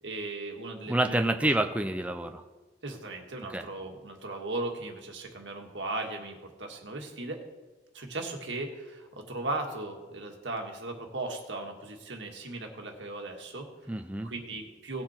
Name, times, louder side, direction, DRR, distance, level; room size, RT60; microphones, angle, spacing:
voice 1, 0.0-1.5 2.8-7.5 7.9-13.7 14.2-15.0, right 2 dB, 75° right, 3 dB, 1.7 m, -37 dB
voice 2, 0.9-2.4 3.5-3.6 13.9-14.3, right 1 dB, 10° right, 6 dB, 0.5 m, -28 dB
18.0 x 6.1 x 4.3 m, 1.2 s
head